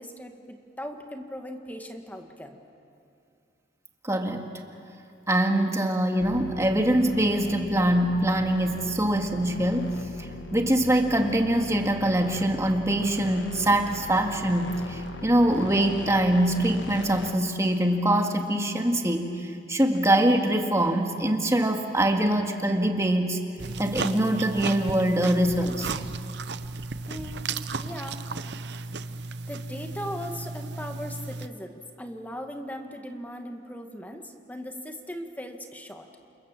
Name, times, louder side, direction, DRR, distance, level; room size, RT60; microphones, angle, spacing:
voice 1, 0.0-2.6 27.1-27.5 27.8-28.2 29.5-36.1, equal, 10° left, 4 dB, 1.7 m, -38 dB
voice 2, 4.0-4.5 5.3-23.4 23.8-25.9, right 1 dB, 15° right, 3 dB, 1.9 m, -24 dB
sound 1, 6.2-17.3, left 2 dB, 80° left, 1.3 m, -40 dB
sound 2, 23.6-31.5, right 3 dB, 65° right, 0.8 m, -34 dB
29.0 x 27.5 x 7.5 m, 2.5 s
head